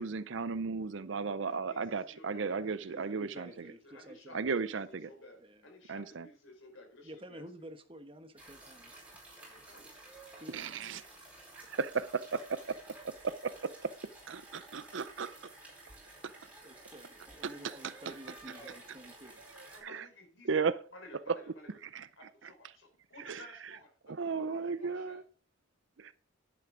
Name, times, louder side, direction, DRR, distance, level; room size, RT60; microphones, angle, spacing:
voice 1, 0.0-3.5 4.3-5.1 5.9-6.3 10.5-11.0 11.7-12.8 13.0-13.9 14.3-15.4 16.2-16.3 17.4-17.5 19.5-20.1 20.4-20.8 21.3-21.4 21.8-22.1 23.3-23.4 24.1-25.2 26.0-26.1, right 5 dB, 65° right, 0.6 m, -35 dB
voice 2, 1.4-7.5 9.5-10.0 19.7-20.5 20.9-21.8 22.2-25.2, left 1 dB, 70° left, 4.5 m, -55 dB
voice 3, 2.7-4.5 5.4-5.6 7.0-9.1 10.4-11.3 16.2-16.3 16.6-19.7, right 1 dB, 25° right, 1.3 m, -52 dB
sound 1, 8.4-19.8, right 2 dB, 5° right, 4.7 m, -53 dB
11.0 x 9.4 x 3.9 m
head